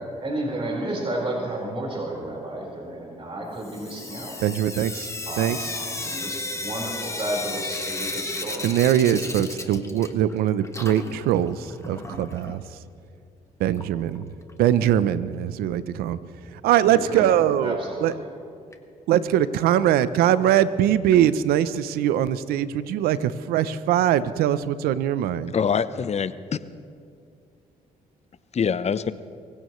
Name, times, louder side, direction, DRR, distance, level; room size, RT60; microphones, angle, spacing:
voice 1, 0.0-4.4 5.2-8.7 16.9-17.3 17.6-18.3, right 1 dB, 35° right, -2 dB, 4.6 m, -32 dB
Sink (filling or washing) / Drip, 3.6-10.4 10.6-12.6 13.7-13.8 14.2-14.3 14.5-14.6 17.5-17.6 18.1-18.2 18.7-18.8 19.4-19.5 20.1-20.2 21.1-21.2, left 2 dB, 20° left, 1.5 m, -34 dB
voice 2, 4.4-5.1 5.4-5.6 8.6-12.6 13.6-14.3 14.6-16.2 16.6-18.1 19.1-25.5, right 11 dB, 85° right, 15 dB, 0.6 m, -22 dB
voice 3, 25.5-26.6 28.6-29.1, left 6 dB, 45° left, 14 dB, 0.8 m, -24 dB
24.5 x 16.0 x 3.1 m, 2.4 s
supercardioid pair, 65°, 15 cm